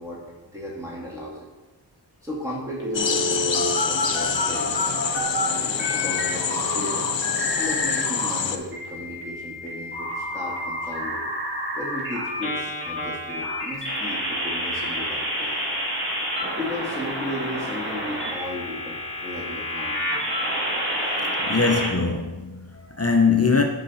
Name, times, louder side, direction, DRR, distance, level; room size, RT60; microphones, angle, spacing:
voice 1, 0.0-1.5 2.2-5.3 5.6-7.1 7.6-11.2 11.7-15.7 16.6-20.1, left 1 dB, 5° right, 1.7 m, -35 dB
sound 1, 2.8-5.5 5.8-8.4 8.7-21.9, equal, 25° right, 2.3 m, -29 dB
sound 2, 2.9-8.6, left 6 dB, 75° left, 0.6 m, -26 dB
voice 2, 21.4-23.6, left 4 dB, 35° left, 0.7 m, -22 dB
8.5 x 5.6 x 4.1 m
wide cardioid pair, 45°, 44 cm